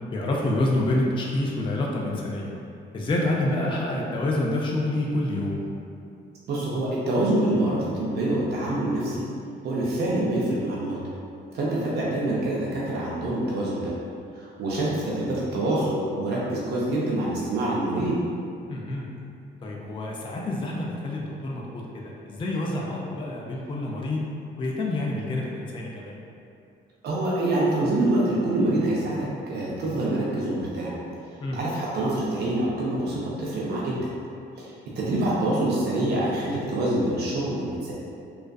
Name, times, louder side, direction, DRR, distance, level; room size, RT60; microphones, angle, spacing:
voice 1, 0.1-2.5 2.9-5.7 10.9-11.0 18.7-19.1 19.6-24.3 24.6-26.2 31.4-31.6, left 1 dB, 25° left, -2 dB, 0.3 m, -27 dB
voice 2, 6.5-9.2 9.6-11.0 11.5-13.9 14.6-18.2 27.0-30.9 31.5-34.1 34.6-34.7 35.0-37.9, right 1 dB, 55° right, -6 dB, 0.5 m, -26 dB
2.4 x 2.4 x 2.2 m, 2.5 s
cardioid pair, 90°, 20 cm